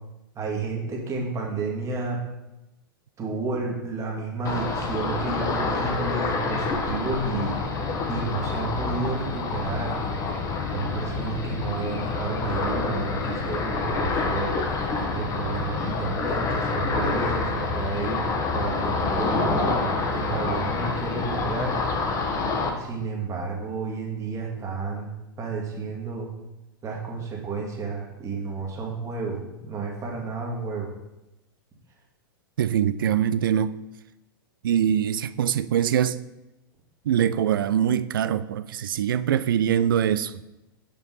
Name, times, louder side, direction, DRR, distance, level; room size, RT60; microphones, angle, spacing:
voice 1, 0.4-2.2 3.2-7.6 8.1-10.0 10.7-14.6 15.1-18.2 18.5-21.7 22.8-26.3 26.8-30.9, right 3 dB, 25° right, 1.9 m, -31 dB
Ocean, 4.4-22.7, left 3 dB, 30° left, 1.1 m, -27 dB
voice 2, 32.6-33.7 34.6-36.2 37.1-40.4, right 9 dB, 65° right, 0.4 m, -23 dB
7.0 x 5.5 x 4.0 m
figure-of-eight pair, 100°, 12 cm